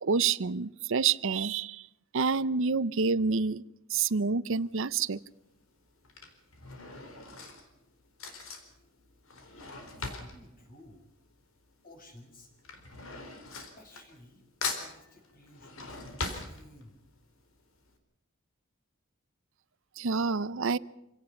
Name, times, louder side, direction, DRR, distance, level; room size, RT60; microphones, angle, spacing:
voice 1, 0.0-1.9 2.1-3.6 3.9-5.2 20.0-20.8, right 5 dB, 65° right, 0.7 m, -28 dB
Drawer open or close / Cutlery silverware, 4.6-5.0 5.8-11.7 12.0-14.4 14.6-17.1 17.6-17.7 17.9-18.0, left 3 dB, 85° left, 4.1 m, -40 dB
voice 2, 10.0-11.1 11.8-12.5 13.5-14.4 14.7-17.0, left 1 dB, 45° left, 6.0 m, -54 dB
27.0 x 17.5 x 5.8 m
head